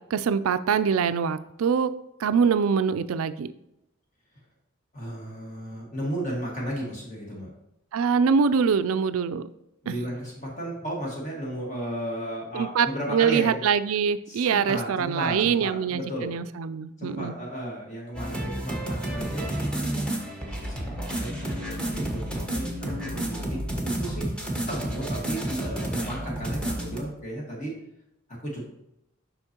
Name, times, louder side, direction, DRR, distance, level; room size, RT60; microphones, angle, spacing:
voice 1, 0.1-1.9 2.2-3.5 7.9-9.5 9.9-10.0 12.5-17.3, right 6 dB, 80° right, 13 dB, 0.4 m, -24 dB
voice 2, 4.9-7.5 9.8-13.6 14.3-16.4 17.0-24.3 24.7-27.8 28.3-28.7, equal, 35° left, -3 dB, 1.6 m, -34 dB
sound 1, 18.1-27.0, right 1 dB, 5° left, 1.0 m, -30 dB
7.9 x 5.6 x 2.9 m, 0.84 s
head